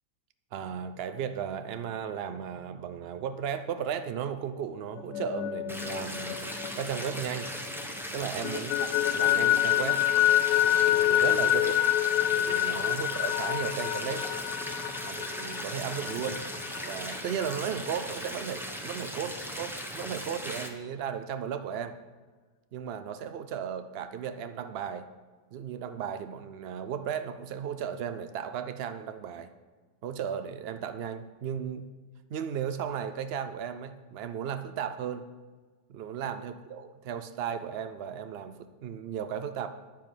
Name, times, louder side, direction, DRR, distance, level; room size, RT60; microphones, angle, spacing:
voice 1, 0.5-7.5 8.1-8.9 9.1-10.0 10.6-11.8 12.3-14.3 15.0-16.5 16.8-22.0 22.7-25.1 25.5-29.5 30.0-31.9 32.3-35.2 35.9-39.7, right 8 dB, 85° right, 10 dB, 0.5 m, -35 dB
sound 1, 5.0-7.8 8.2-17.6, left 13 dB, 75° left, 1.1 m, -27 dB
sound 2, 5.7-20.7, equal, ahead, 0.8 m, -38 dB
9.9 x 7.3 x 7.3 m, 1.4 s
omnidirectional pair, 1.8 m